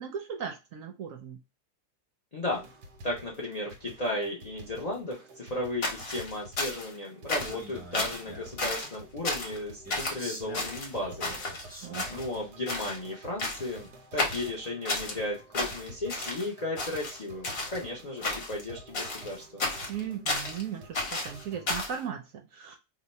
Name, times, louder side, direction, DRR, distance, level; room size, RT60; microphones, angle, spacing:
voice 1, 0.0-1.4 11.8-12.2 19.9-22.8, right 8 dB, 65° right, 4 dB, 0.8 m, -37 dB
voice 2, 2.3-2.6 3.0-19.6, left 1 dB, 70° left, -2 dB, 0.3 m, -35 dB
sound 1, 2.5-21.8, right 1 dB, 85° right, 1.3 m, -50 dB
sound 2, 5.8-7.0 7.3-7.6 7.9-8.2 8.6-8.9 9.2-9.6 9.9-10.2 10.5-11.6 11.9-12.4 12.7-13.0 13.4-13.8 14.2-15.2 15.5-16.5 16.8-17.8 18.2-18.6 18.9-20.6 20.9-22.0, left 2 dB, 45° left, 0.9 m, -32 dB
Male speech man speaking, 7.3-8.6 9.8-12.3, right 1 dB, 10° right, 0.5 m, -45 dB
2.9 x 2.1 x 4.0 m, 0.26 s
omnidirectional pair, 1.7 m